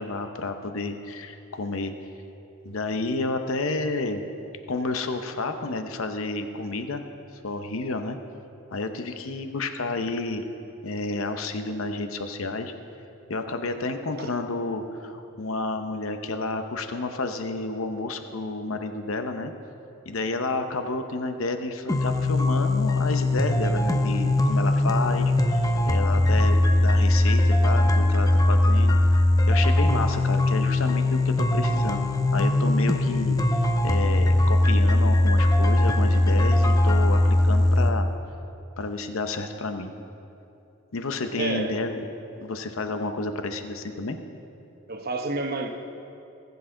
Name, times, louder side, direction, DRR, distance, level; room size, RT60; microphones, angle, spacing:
voice 1, 0.0-1.9 2.6-4.2 4.7-7.0 7.4-8.2 8.7-10.5 10.8-12.7 13.3-19.5 20.1-32.1 32.3-38.1 38.8-39.9 40.9-42.1 42.4-44.2, left 3 dB, 80° left, 7 dB, 0.8 m, -30 dB
sound 1, 21.9-37.9, left 1 dB, 15° left, 0.5 m, -20 dB
voice 2, 41.4-41.7 44.9-45.7, right 2 dB, 45° right, 4 dB, 0.9 m, -29 dB
19.5 x 8.2 x 3.8 m, 2.8 s
head